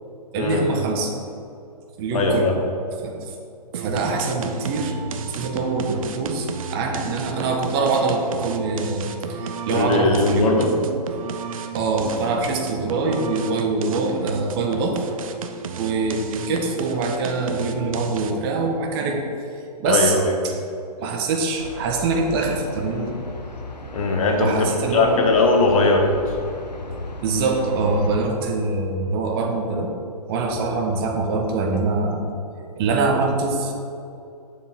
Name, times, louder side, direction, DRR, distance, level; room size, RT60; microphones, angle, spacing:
voice 1, 0.3-1.1 2.0-2.5 3.0-3.3 3.7-5.0 5.2-10.7 11.7-15.0 15.8-19.3 19.8-20.1 20.4-20.5 21.0-23.2 24.4-25.3 27.2-29.9 30.3-32.2 32.8-33.7, right 3 dB, 35° right, 2 dB, 1.4 m, -24 dB
voice 2, 2.1-2.6 9.7-10.7 19.8-20.4 23.9-26.1, left 3 dB, 55° left, 2 dB, 1.8 m, -19 dB
sound 1, 3.7-18.5, right 5 dB, 55° right, 0.7 m, -33 dB
sound 2, 21.6-28.2, left 2 dB, 85° left, 1.0 m, -35 dB
9.2 x 7.2 x 4.4 m, 2.5 s
figure-of-eight pair, 125°, 21 cm